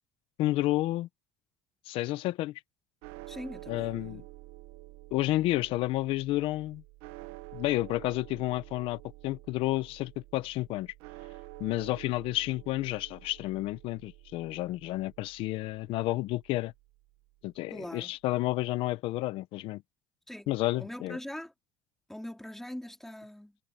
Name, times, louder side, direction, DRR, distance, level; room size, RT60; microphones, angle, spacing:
voice 1, 0.4-1.1 1.9-2.6 3.7-4.2 5.1-6.8 7.5-10.9 11.6-16.7 17.4-19.8 20.5-21.2, left 17 dB, 70° left, 1.0 m, -31 dB
sound 1, 3.0-17.3, right 19 dB, 80° right, 1.5 m, -49 dB
voice 2, 3.3-4.3 17.7-18.1 20.3-20.5 20.8-21.5 22.1-23.6, left 1 dB, 5° left, 3.0 m, -42 dB
cardioid pair, 120°, 10 cm